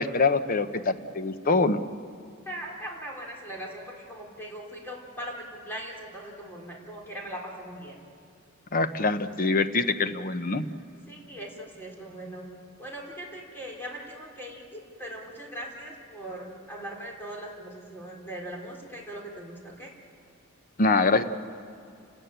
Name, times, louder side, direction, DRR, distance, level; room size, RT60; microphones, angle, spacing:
voice 1, 0.0-1.8 8.7-10.6 20.8-21.2, left 3 dB, 45° left, 10 dB, 0.9 m, -24 dB
voice 2, 2.5-8.0 11.1-12.4 12.8-19.9, right 1 dB, 10° left, -2 dB, 3.9 m, -40 dB
30.0 x 13.5 x 9.0 m, 2.3 s
head